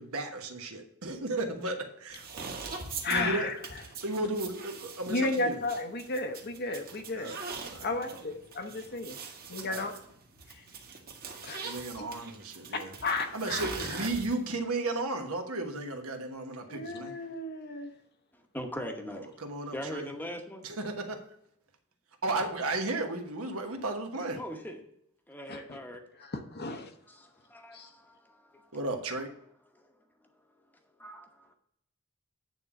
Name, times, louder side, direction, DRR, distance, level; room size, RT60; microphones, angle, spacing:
voice 1, 0.0-2.3 3.1-3.5 4.0-5.6 7.1-7.4 7.7-8.2 9.6-9.9 11.6-12.9 13.3-17.1 19.4-20.1 20.6-21.2 22.2-24.4 28.7-29.3, right 2 dB, 75° right, 1.2 m, -34 dB
sound 1, 2.1-14.5, right 4 dB, 45° right, 1.5 m, -42 dB
voice 2, 3.0-3.6 5.1-7.4 7.8-9.2 9.5-9.9 10.5-10.6 11.4-12.1 12.7-14.1 16.7-17.9 25.5-25.8 26.2-26.9 27.7-27.9, left 2 dB, 45° left, 0.8 m, -34 dB
voice 3, 18.3-19.3 19.7-20.6 24.4-24.8 25.3-26.0 27.1-28.8 29.7-29.9 31.0-31.5, equal, 10° left, 0.9 m, -41 dB
9.1 x 3.7 x 7.0 m
head